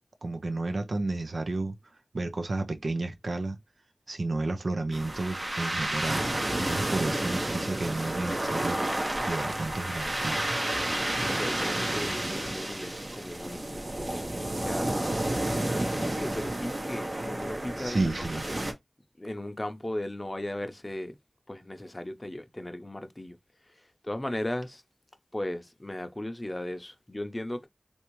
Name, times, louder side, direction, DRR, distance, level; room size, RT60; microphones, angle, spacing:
voice 1, 0.2-1.8 2.1-3.6 4.1-6.3 6.6-8.8 9.2-10.5 17.8-18.4, right 2 dB, 85° right, 0.6 m, -31 dB
sound 1, 4.9-18.7, right 1 dB, 50° right, 0.9 m, -31 dB
voice 2, 10.9-18.1 19.2-21.2 21.5-23.4 23.7-24.8 25.3-27.7, left 1 dB, 30° left, 0.6 m, -37 dB
3.4 x 2.6 x 3.0 m
wide cardioid pair, 45°, 0 cm